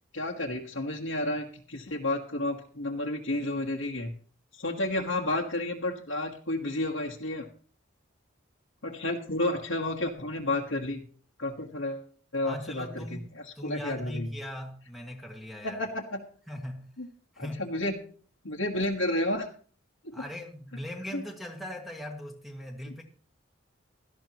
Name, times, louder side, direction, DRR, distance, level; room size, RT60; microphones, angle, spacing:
voice 1, 0.1-4.1 4.5-7.5 8.8-11.0 11.4-12.1 12.3-14.3 15.6-16.2 17.0-17.1 17.4-18.0 18.4-19.5 20.0-20.2 21.1-21.2 22.9-23.0, left 1 dB, 70° left, 1.5 m, -31 dB
voice 2, 12.4-15.8 16.5-16.9 17.3-17.6 20.1-23.0, left 1 dB, ahead, 1.9 m, -40 dB
17.5 x 13.0 x 3.0 m
head